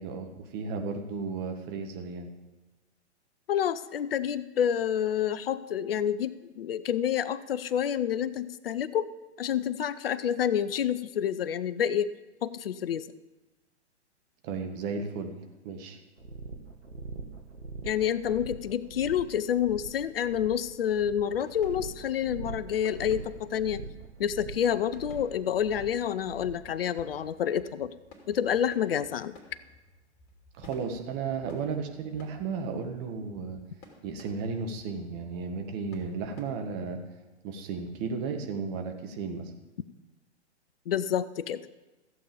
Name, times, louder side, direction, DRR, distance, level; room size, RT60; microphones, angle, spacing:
voice 1, 0.0-2.3 14.4-15.3 15.6-16.0 30.6-33.6 34.0-37.0 37.4-39.5, right 5 dB, 30° right, 5 dB, 1.6 m, -34 dB
voice 2, 3.5-9.1 9.4-12.1 12.4-13.1 17.8-23.8 24.2-27.9 28.3-29.3 40.9-41.6, left 9 dB, 55° left, 16 dB, 0.6 m, -28 dB
sound 1, 16.2-26.7, right 4 dB, 80° right, 1.7 m, -43 dB
sound 2, 21.3-36.4, left 2 dB, 35° left, 2.7 m, -55 dB
14.5 x 8.3 x 5.1 m, 1.1 s
figure-of-eight pair, 115°, 34 cm